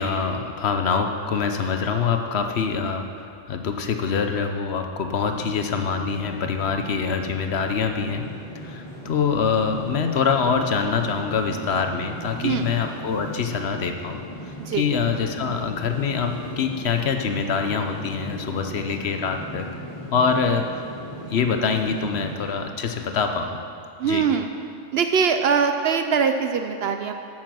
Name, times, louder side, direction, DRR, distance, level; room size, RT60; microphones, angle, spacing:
voice 1, 0.0-8.3 8.6-14.2 14.5-19.7 20.1-20.6 21.3-23.6 24.0-24.2, left 5 dB, 60° left, 5 dB, 0.9 m, -25 dB
sound 1, 5.2-22.6, equal, 25° left, 2.8 m, -38 dB
voice 2, 24.0-24.5 24.9-27.1, right 6 dB, 65° right, 6 dB, 0.7 m, -22 dB
8.9 x 7.7 x 6.0 m, 2.5 s
omnidirectional pair, 1.3 m